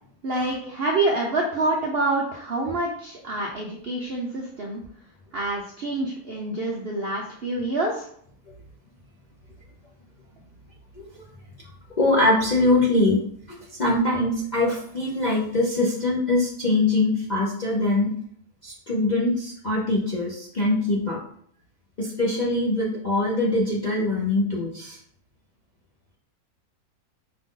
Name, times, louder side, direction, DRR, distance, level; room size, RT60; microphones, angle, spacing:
voice 1, 0.2-4.8 5.3-8.0, right 2 dB, 65° right, -1 dB, 0.6 m, -27 dB
voice 2, 12.0-18.1 18.6-21.2 22.0-25.0, left 2 dB, 50° left, -4 dB, 0.5 m, -23 dB
5.6 x 2.6 x 3.7 m, 0.63 s
omnidirectional pair, 1.8 m